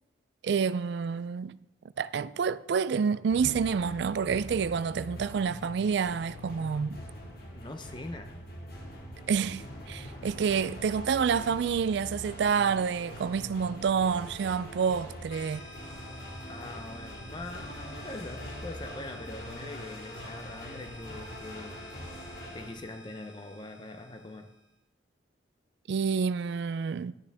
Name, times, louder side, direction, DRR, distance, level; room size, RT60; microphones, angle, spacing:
voice 1, 0.4-1.6 2.0-7.0 9.3-15.7 25.9-27.1, right 6 dB, 60° right, 0.3 m, -28 dB
sound 1, 3.3-22.7, left 1 dB, 50° left, 1.8 m, -43 dB
voice 2, 7.5-8.4 16.5-21.8 22.5-24.5, left 2 dB, 25° left, 0.5 m, -43 dB
sound 2, 15.3-24.7, left 1 dB, 80° left, 1.3 m, -51 dB
12.0 x 9.6 x 3.5 m
head